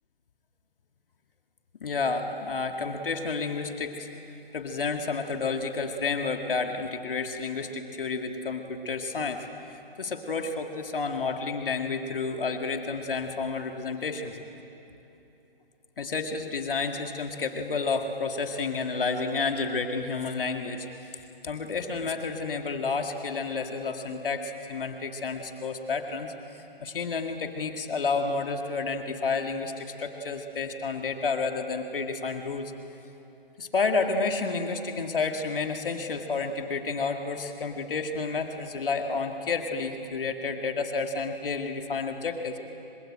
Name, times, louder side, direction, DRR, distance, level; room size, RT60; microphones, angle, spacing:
voice 1, 1.8-4.1 4.5-14.4 16.0-21.2 21.4-26.3 26.8-32.7 33.6-42.6, left 4 dB, ahead, -20 dB, 0.5 m, -30 dB
25.0 x 21.0 x 8.8 m, 3.0 s
hypercardioid pair, 170°, 29 cm